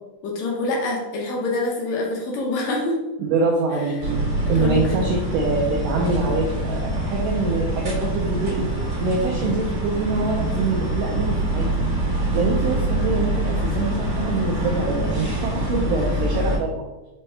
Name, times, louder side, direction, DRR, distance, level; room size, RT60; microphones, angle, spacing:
voice 1, 0.2-3.0 3.8-3.9 4.6-5.1, left 2 dB, 75° left, -2 dB, 2.0 m, -26 dB
voice 2, 3.2-4.2 4.5-8.7 9.0-11.7 12.3-16.8, right 3 dB, 85° right, -1 dB, 1.4 m, -25 dB
sound 1, 4.0-16.6, right 1 dB, 45° right, 1.8 m, -25 dB
5.3 x 2.7 x 3.2 m, 1.1 s
omnidirectional pair, 3.4 m